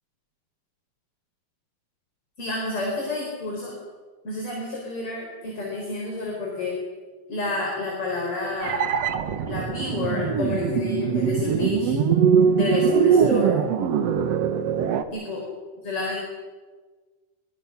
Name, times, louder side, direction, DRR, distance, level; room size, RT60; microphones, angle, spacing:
voice 1, 2.4-3.7 4.2-6.8 7.3-8.8 9.4-11.9 12.5-13.6 15.1-15.4 15.8-16.2, left 3 dB, 35° left, -1 dB, 5.0 m, -29 dB
sound 1, 8.6-15.0, right 7 dB, 60° right, 1.7 m, -22 dB
26.0 x 23.0 x 6.0 m, 1.4 s
omnidirectional pair, 4.4 m